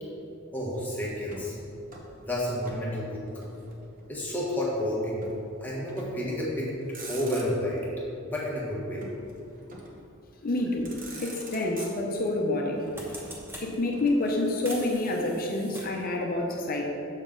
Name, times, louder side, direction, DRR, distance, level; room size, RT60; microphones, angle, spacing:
voice 1, 0.5-1.5 2.2-3.2 4.1-5.2 5.6-6.7 7.1-7.9 8.3-9.0, left 1 dB, 10° left, -6 dB, 1.5 m, -30 dB
Motor vehicle (road), 1.2-2.9 3.1-4.2 5.2-5.4 5.9-6.3 6.7-7.8 9.0-10.1 10.6-10.7 10.8-12.4 13.2-14.9, right 2 dB, 40° right, 1.0 m, -46 dB
voice 2, 10.4-10.9 11.2-12.9 13.6-16.9, left 2 dB, 45° left, 0 dB, 0.8 m, -28 dB
sound 1, 10.8-10.9 12.2-12.4 12.7-13.7 14.6-16.1, equal, 10° right, 1.0 m, -43 dB
7.1 x 6.1 x 3.8 m, 2.7 s
head